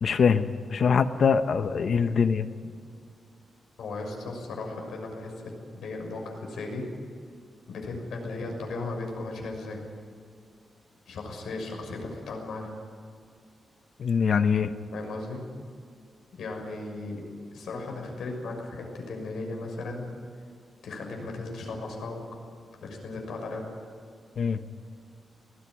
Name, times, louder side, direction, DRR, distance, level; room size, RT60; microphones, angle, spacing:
voice 1, 0.0-2.4 14.0-14.7 24.4-24.6, left 6 dB, 55° left, 10 dB, 1.1 m, -23 dB
voice 2, 3.8-6.9 7.7-9.8 11.1-12.7 14.9-15.4 16.4-17.2 17.5-20.1 20.8-22.2 22.8-23.6, left 3 dB, 85° left, 2 dB, 6.2 m, -36 dB
20.5 x 17.0 x 10.0 m, 2.2 s
wide cardioid pair, 150°, 0 cm